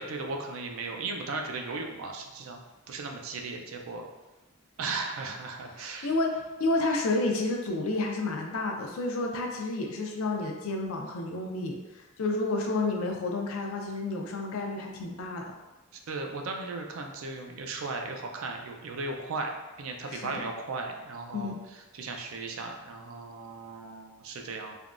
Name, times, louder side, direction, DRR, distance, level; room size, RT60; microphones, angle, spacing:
voice 1, 0.0-2.6 2.9-4.0 4.8-6.1 16.1-21.5 21.9-24.8, right 3 dB, 80° right, 2 dB, 0.4 m, -36 dB
voice 2, 5.8-11.8 12.2-15.4 20.1-20.3 21.3-21.6, left 2 dB, 85° left, 1 dB, 0.5 m, -30 dB
3.4 x 2.2 x 2.4 m, 1.1 s
head